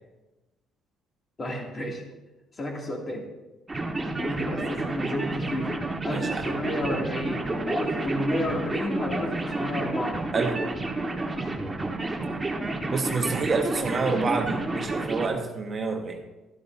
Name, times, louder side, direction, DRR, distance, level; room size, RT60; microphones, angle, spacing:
voice 1, 1.4-2.0 2.6-3.3 4.2-10.2, left 1 dB, 35° left, -1 dB, 2.5 m, -31 dB
sound 1, 3.7-15.3, right 2 dB, 15° right, 1.6 m, -30 dB
voice 2, 6.1-6.4 10.3-10.6 12.9-16.2, right 4 dB, 35° right, 3 dB, 1.3 m, -28 dB
12.5 x 12.5 x 2.7 m, 1.1 s
cardioid pair, 100°, 0 cm